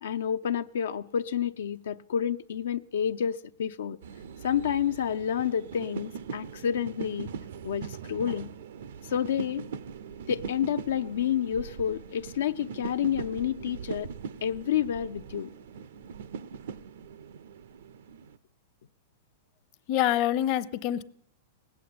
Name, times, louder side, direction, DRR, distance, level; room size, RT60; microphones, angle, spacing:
voice 1, 0.0-4.0 4.4-7.3 7.6-8.5 9.0-9.7 10.3-14.1 14.4-15.5, left 9 dB, 85° left, 0.5 m, -29 dB
sound 1, 4.0-18.4, right 6 dB, 80° right, 0.6 m, -41 dB
voice 2, 19.9-21.0, left 12 dB, 40° left, 0.7 m, -26 dB
19.0 x 8.2 x 8.6 m
supercardioid pair, 145°, 0 cm